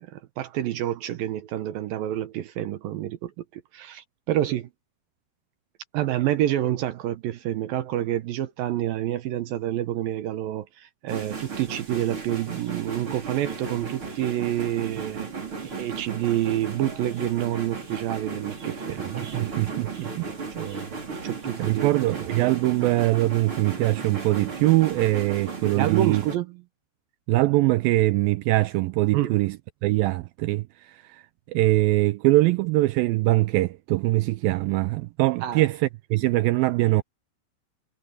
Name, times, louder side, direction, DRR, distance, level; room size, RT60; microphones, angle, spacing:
voice 1, 0.0-4.7 5.9-15.3 15.6-19.6 20.6-20.9 21.2-22.2 25.7-26.5 29.1-29.4 35.4-35.6, right 12 dB, 70° right, 2.4 m, -28 dB
sound 1, 11.1-26.4, right 4 dB, 30° right, 5.2 m, -35 dB
voice 2, 19.0-20.3 21.6-26.2 27.3-29.6 29.8-37.0, right 18 dB, 90° right, 2.0 m, -23 dB
omnidirectional pair, 4.7 m